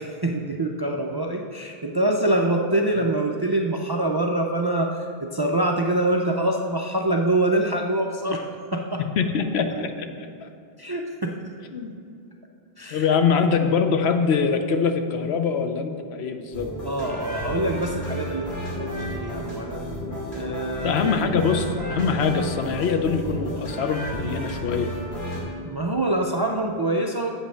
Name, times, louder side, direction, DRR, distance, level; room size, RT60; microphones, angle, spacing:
voice 1, 0.0-9.0 10.8-11.3 12.8-13.1 16.8-19.9 20.3-21.2 25.6-27.3, right 1 dB, 40° right, 1 dB, 0.3 m, -25 dB
voice 2, 9.2-9.9 10.2-10.5 11.7-12.0 12.9-16.7 20.8-24.9, left 5 dB, 85° left, 7 dB, 0.9 m, -23 dB
sound 1, 16.5-25.4, equal, 55° left, 2.8 m, -32 dB
8.0 x 5.3 x 6.1 m, 2.5 s
omnidirectional pair, 1.0 m